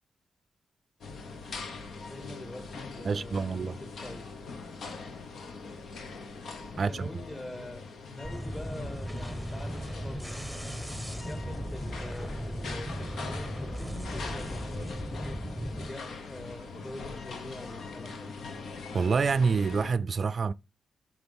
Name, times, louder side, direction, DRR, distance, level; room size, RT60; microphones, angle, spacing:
sound 1, 1.0-19.9, left 4 dB, 90° left, 1.2 m, -42 dB
voice 1, 2.1-4.2 6.7-10.4 11.2-15.4 15.8-18.3, left 1 dB, 30° left, 2.7 m, -45 dB
voice 2, 3.0-3.8 6.8-7.1 18.9-20.5, right 5 dB, 55° right, 0.4 m, -27 dB
sound 2, 8.2-15.9, equal, 5° left, 1.2 m, -37 dB
6.0 x 5.9 x 5.3 m
cardioid pair, 85°, 0 cm